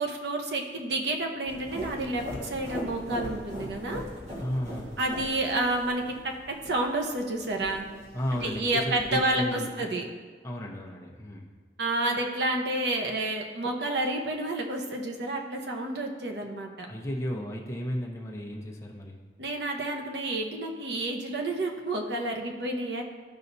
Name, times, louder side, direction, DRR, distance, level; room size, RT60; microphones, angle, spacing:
voice 1, 0.0-4.0 5.0-7.9 8.4-10.0 11.8-16.9 19.4-23.0, right 2 dB, 75° right, 2 dB, 0.9 m, -30 dB
sound 1, 1.5-9.5, equal, 40° right, 1.5 m, -41 dB
voice 2, 4.4-5.0 8.1-10.0 10.4-11.5 16.9-19.2, equal, 15° left, -1 dB, 0.8 m, -34 dB
13.5 x 5.6 x 2.7 m, 1.5 s
head